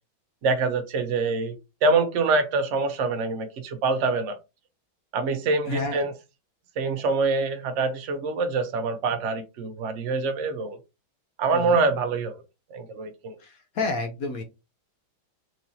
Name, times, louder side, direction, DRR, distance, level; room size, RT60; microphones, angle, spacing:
voice 1, 0.4-1.6 1.8-4.4 5.1-6.1 6.8-10.8 11.4-12.4 12.7-13.3, right 3 dB, 85° right, 0.6 m, -25 dB
voice 2, 5.7-6.0 11.5-11.8 13.4-14.4, left 3 dB, 70° left, 0.8 m, -30 dB
4.6 x 2.6 x 3.0 m
omnidirectional pair, 2.2 m